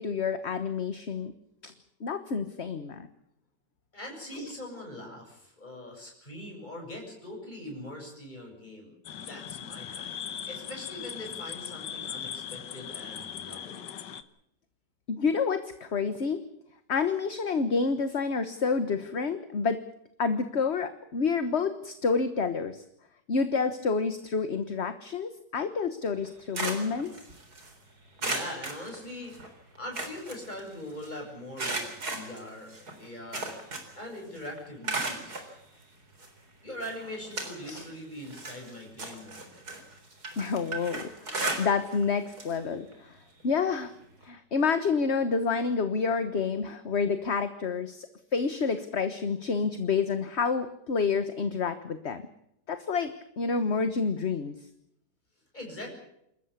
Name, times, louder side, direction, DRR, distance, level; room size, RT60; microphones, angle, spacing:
voice 1, 0.0-1.3 1.6-1.7 2.0-3.1 4.4-4.5 15.1-16.4 16.9-19.8 20.2-22.8 23.3-27.1 37.7-37.8 40.4-43.2 43.4-43.9 44.2-52.2 52.7-54.5, left 5 dB, 40° left, 10 dB, 1.4 m, -29 dB
voice 2, 3.9-10.2 10.4-13.8 28.2-29.3 29.8-31.8 32.1-32.7 33.0-33.5 33.9-35.4 36.6-39.7 55.5-55.9, left 1 dB, 25° left, 1 dB, 7.7 m, -42 dB
sound 1, 9.0-14.2, left 9 dB, 90° left, 1.9 m, -39 dB
sound 2, 26.2-27.7 28.2-29.5 29.8-31.1 31.6-34.1 34.4-35.5 36.2-36.3 36.8-37.9 38.2-42.0 42.3-42.6 42.9-43.0 44.2-44.3, right 2 dB, 60° right, 4.5 m, -36 dB
28.0 x 14.0 x 8.4 m, 0.77 s
omnidirectional pair, 1.9 m